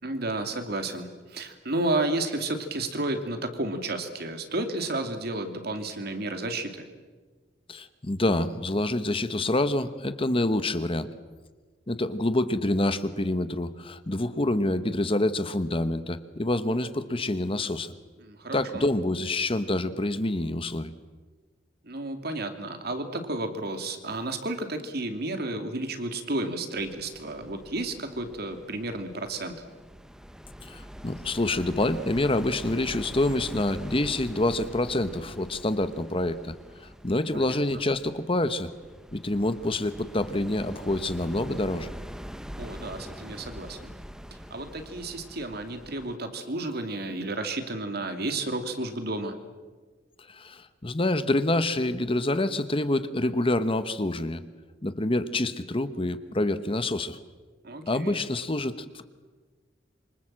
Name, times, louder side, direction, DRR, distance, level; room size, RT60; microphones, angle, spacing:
voice 1, 0.0-6.8 18.2-18.9 21.8-29.6 37.3-37.6 42.6-43.9 44.5-49.3 57.6-58.2, right 2 dB, 60° right, 7 dB, 2.7 m, -32 dB
voice 2, 7.7-11.1 11.9-17.9 18.5-20.9 30.6-36.5 36.8-38.7 39.1-41.9 50.3-54.4 54.8-57.2 57.9-59.0, left 1 dB, 30° left, 12 dB, 1.1 m, -27 dB
sound 1, 26.8-46.2, equal, 5° right, 0.8 m, -44 dB
27.0 x 25.0 x 7.6 m, 1.3 s
head